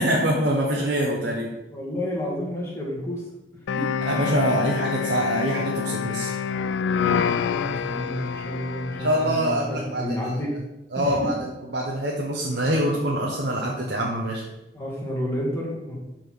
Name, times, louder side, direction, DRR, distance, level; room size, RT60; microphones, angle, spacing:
voice 1, 0.0-1.5 4.0-6.3 9.0-10.0 10.9-14.4, right 1 dB, 60° right, -3 dB, 1.1 m, -24 dB
voice 2, 1.7-3.3 3.7-3.8 7.0-10.5 11.0-11.3 13.4-13.6 14.7-16.0, left 1 dB, 15° left, -4 dB, 2.2 m, -30 dB
sound 1, 3.7-9.6, left 7 dB, 75° left, 0.3 m, -27 dB
12.0 x 4.5 x 4.6 m, 0.97 s
head